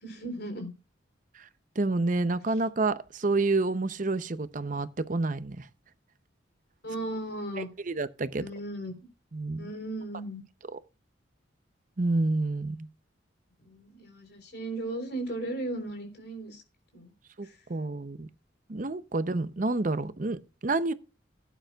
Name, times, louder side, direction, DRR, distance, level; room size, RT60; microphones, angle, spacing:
voice 1, 0.0-0.7 6.8-7.7 8.4-8.9 9.6-10.4 13.6-16.6 16.9-17.1 17.4-17.6, right 1 dB, 55° left, 3.6 m, -36 dB
voice 2, 1.8-5.7 7.9-8.4 9.3-9.7 12.0-12.9 17.4-18.3 18.7-20.9, right 3 dB, 40° right, 0.7 m, -29 dB
17.0 x 9.2 x 2.3 m
head